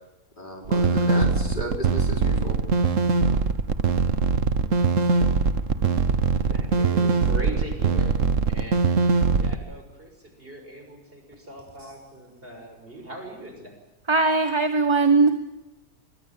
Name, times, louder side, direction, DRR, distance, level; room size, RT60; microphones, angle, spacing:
voice 1, 0.4-2.6, equal, 30° left, 2 dB, 4.8 m, -34 dB
sound 1, 0.6-9.5, right 4 dB, 60° right, 1.6 m, -22 dB
voice 2, 6.5-8.9 9.4-13.8, right 1 dB, 40° right, 4 dB, 6.8 m, -40 dB
voice 3, 14.1-15.3, right 3 dB, 20° right, 8 dB, 1.1 m, -19 dB
25.0 x 23.5 x 7.4 m, 0.99 s
omnidirectional pair, 1.5 m